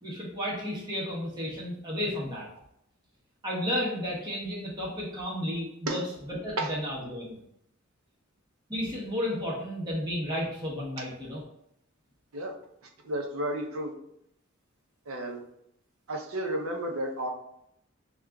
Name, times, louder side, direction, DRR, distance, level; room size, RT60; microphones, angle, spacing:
voice 1, 0.0-2.5 3.4-7.4 8.7-11.4, equal, 20° right, -5 dB, 0.9 m, -32 dB
voice 2, 13.0-13.9 15.1-15.4 16.1-17.3, right 1 dB, 80° right, 2 dB, 0.7 m, -32 dB
6.2 x 2.4 x 2.3 m, 0.77 s
head